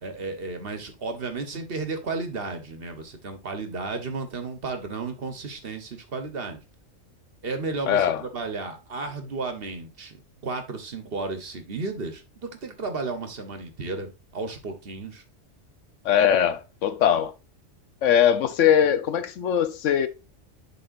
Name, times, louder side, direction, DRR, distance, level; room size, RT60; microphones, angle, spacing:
voice 1, 0.0-6.6 7.4-10.2 10.4-15.2, right 3 dB, 50° right, 1.2 m, -33 dB
voice 2, 7.9-8.2 16.0-17.3 18.0-20.1, left 9 dB, 75° left, 1.0 m, -21 dB
11.0 x 3.9 x 2.5 m
omnidirectional pair, 1.3 m